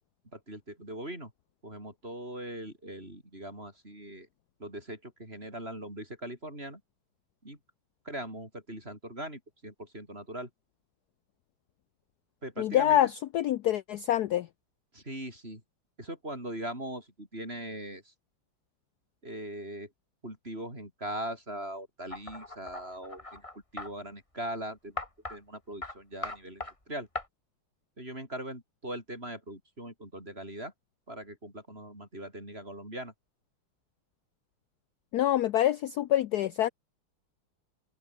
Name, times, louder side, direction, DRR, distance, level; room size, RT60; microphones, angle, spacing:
voice 1, 0.3-1.3 1.6-4.3 4.6-6.8 7.4-7.6 8.0-10.5 12.4-13.0 14.9-15.6 16.0-18.1 19.2-19.9 20.2-23.4 23.7-25.0 25.3-27.1 28.0-30.7 31.1-33.1, right 1 dB, 25° right, 7.9 m, -40 dB
voice 2, 12.6-14.5 35.1-36.7, left 12 dB, 75° left, 0.9 m, -26 dB
sound 1, 22.1-23.9 25.0-25.4 25.8-26.0 26.2-26.7 27.2-27.3, left 2 dB, 15° left, 2.6 m, -38 dB
open air
omnidirectional pair, 2.3 m